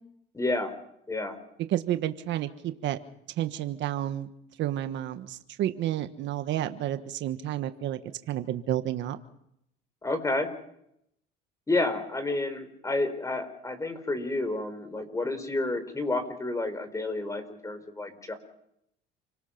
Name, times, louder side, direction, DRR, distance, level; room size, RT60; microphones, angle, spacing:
voice 1, 0.3-0.7 1.1-1.4 10.0-10.5 11.7-18.3, left 2 dB, 15° left, 9 dB, 4.6 m, -30 dB
voice 2, 1.7-3.0 3.4-4.3 4.6-8.0 8.3-9.2, right 12 dB, 65° right, 9 dB, 1.4 m, -30 dB
29.5 x 18.5 x 5.9 m, 0.76 s
cardioid pair, 105°, 20 cm